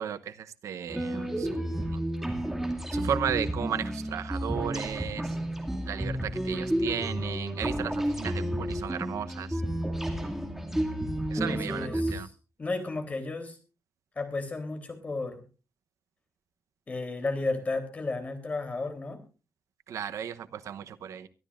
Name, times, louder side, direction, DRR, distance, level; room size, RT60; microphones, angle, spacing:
voice 1, 0.0-2.0 2.9-5.3 5.8-9.6 11.3-12.3 19.9-21.3, right 8 dB, 80° right, 11 dB, 0.9 m, -35 dB
sound 1, 0.9-12.1, equal, 5° right, 2.4 m, -31 dB
voice 2, 11.3-12.3 12.6-13.6 14.2-15.4 16.9-19.2, left 3 dB, 30° left, 7 dB, 3.4 m, -33 dB
23.5 x 12.5 x 2.5 m, 0.32 s
wide cardioid pair, 155°, 5 cm